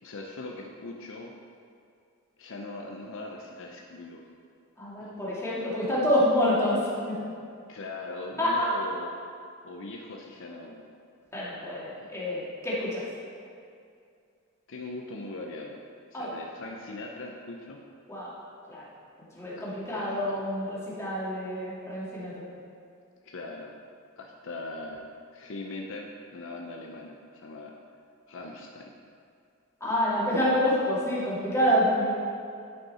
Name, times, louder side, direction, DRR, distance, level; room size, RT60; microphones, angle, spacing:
voice 1, 0.0-1.3 2.4-4.2 5.0-5.2 7.7-9.1 9.6-10.9 12.0-12.1 14.7-15.8 16.1-17.8 19.6-20.4 23.2-23.7 24.2-25.0 25.3-27.7 28.3-28.9, left 2 dB, 60° left, 1 dB, 0.7 m, -40 dB
voice 2, 4.8-7.3 8.4-8.8 11.3-13.0 16.1-16.4 18.1-18.3 18.7-18.8 19.3-22.4 29.8-32.1, equal, 15° left, -8 dB, 2.2 m, -27 dB
11.5 x 5.4 x 4.3 m, 2.4 s
head